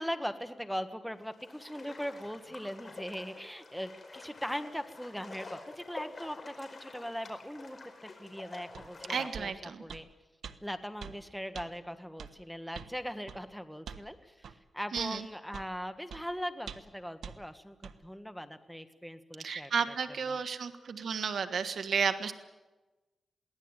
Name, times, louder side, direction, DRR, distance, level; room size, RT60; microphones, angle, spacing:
voice 1, 0.0-10.1 10.6-19.9 20.3-20.4, equal, ahead, 9 dB, 1.6 m, -40 dB
sound 1, 1.1-9.3, left 3 dB, 40° left, 4.8 m, -48 dB
sound 2, 8.7-8.9 9.3-9.5 9.9-10.1 10.4-10.6 11.0-11.2 11.5-11.7 12.2-12.3 12.7-12.9 13.3-13.4 13.9-14.1 14.4-14.6 15.0-15.1 15.5-15.7 16.1-16.2 16.7-16.9 17.2-17.4 17.8-18.0, right 7 dB, 85° right, 1.1 m, -44 dB
voice 2, 9.1-9.8 14.9-15.2 19.4-22.3, right 6 dB, 70° right, 8 dB, 1.5 m, -32 dB
22.5 x 16.5 x 9.0 m, 1.2 s
cardioid pair, 90°, 0 cm